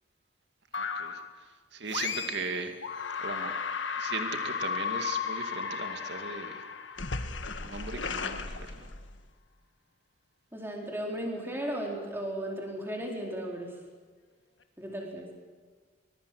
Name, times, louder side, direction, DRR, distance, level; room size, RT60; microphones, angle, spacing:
sound 1, 0.7-1.3 1.9-2.5 2.8-9.3, left 5 dB, 80° left, 1.6 m, -35 dB
voice 1, 0.8-1.2 1.7-2.8 3.2-3.5 4.0-6.6 7.5-8.9, right 4 dB, 70° right, 6 dB, 2.3 m, -38 dB
voice 2, 10.5-13.7 14.8-15.3, right 1 dB, 10° right, 0 dB, 4.5 m, -35 dB
24.0 x 22.0 x 7.9 m, 1.5 s
head